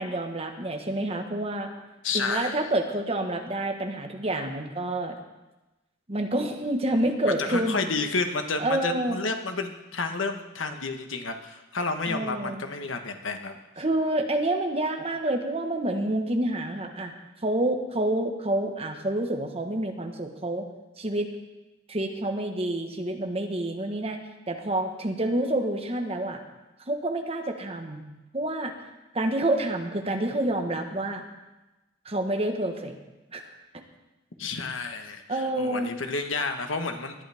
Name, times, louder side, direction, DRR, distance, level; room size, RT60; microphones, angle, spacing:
voice 1, 0.0-1.7 2.1-5.2 6.1-7.8 8.6-9.2 12.1-12.6 13.8-17.1 17.4-20.7 21.0-21.3 21.9-24.2 24.5-26.4 26.9-28.0 28.3-28.7 29.1-31.2 32.0-33.0 33.3-33.4 35.3-35.9, right 1 dB, 30° right, 4 dB, 1.3 m, -28 dB
voice 2, 2.0-2.6 7.4-13.6 34.4-37.1, left 4 dB, 85° left, 6 dB, 1.3 m, -30 dB
19.0 x 11.0 x 3.5 m, 1.0 s
head